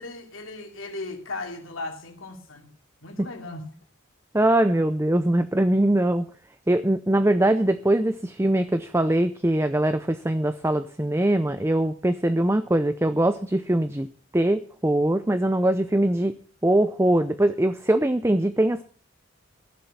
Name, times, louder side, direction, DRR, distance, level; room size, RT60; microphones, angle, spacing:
voice 1, 0.0-2.7 3.0-3.6, left 2 dB, 85° left, 2 dB, 3.0 m, -36 dB
voice 2, 4.3-6.3 6.7-14.1 14.3-16.4 16.6-18.8, right 1 dB, 15° right, 10 dB, 0.6 m, -22 dB
15.5 x 7.6 x 7.0 m, 0.43 s
head